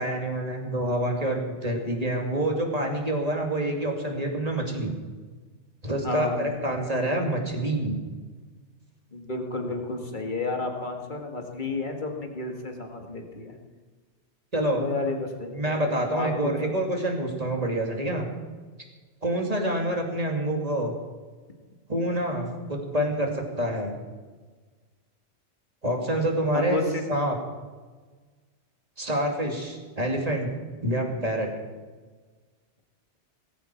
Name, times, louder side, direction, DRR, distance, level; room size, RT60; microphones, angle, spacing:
voice 1, 0.0-4.9 5.8-7.9 14.5-14.8 15.5-18.3 19.2-20.9 21.9-23.9 25.8-26.8 27.1-27.4 29.0-30.5 30.8-31.5, right 1 dB, 30° right, 1 dB, 2.6 m, -27 dB
voice 2, 6.0-6.5 9.1-13.5 14.8-16.7 26.5-26.8, left 3 dB, 40° left, 3 dB, 2.2 m, -31 dB
19.0 x 15.5 x 4.6 m, 1.4 s
omnidirectional pair, 1.2 m